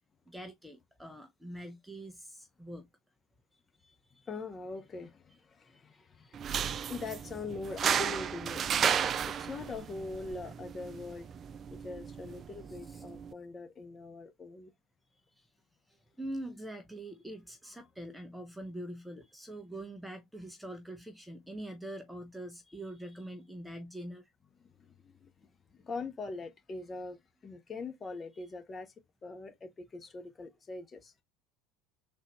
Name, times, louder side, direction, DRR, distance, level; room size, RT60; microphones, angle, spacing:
voice 1, 0.3-2.9 3.8-4.3 5.7-6.9 8.0-8.2 12.8-13.0 15.3-15.5 15.9-24.3 28.3-28.5, right 1 dB, 5° right, 0.7 m, -44 dB
voice 2, 4.3-8.7 9.2-11.3 11.7-14.7 24.6-28.9 29.2-31.1, left 3 dB, 25° left, 1.1 m, -42 dB
sound 1, 6.3-13.3, right 8 dB, 35° right, 0.3 m, -34 dB
3.8 x 2.6 x 3.0 m
hypercardioid pair, 75°, 0 cm